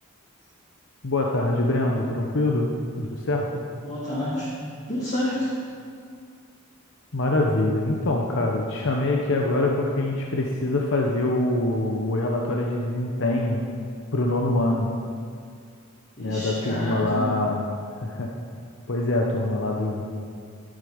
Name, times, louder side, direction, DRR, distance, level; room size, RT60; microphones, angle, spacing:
voice 1, 1.0-2.7 3.0-3.6 7.1-13.6 14.1-14.9 16.2-17.7 18.0-18.3 18.9-20.0, left 2 dB, 60° left, 0 dB, 0.8 m, -24 dB
voice 2, 3.8-4.5 4.9-5.5 16.2-17.3, left 1 dB, 35° left, -8 dB, 2.1 m, -29 dB
11.5 x 7.6 x 5.2 m, 2.2 s
head